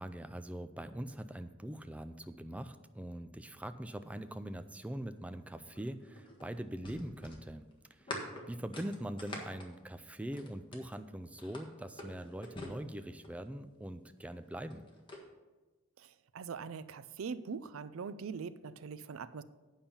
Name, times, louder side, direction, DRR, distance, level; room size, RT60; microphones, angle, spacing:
voice 1, 0.0-7.6 8.0-8.2 8.5-14.8, right 1 dB, 5° right, 10 dB, 0.3 m, -42 dB
sound 1, 5.7-11.0 11.4-13.5 14.5-15.2, left 1 dB, 25° left, 1.5 m, -46 dB
voice 2, 16.0-19.4, right 5 dB, 80° right, 15 dB, 0.4 m, -42 dB
8.7 x 5.6 x 7.0 m, 1.2 s
head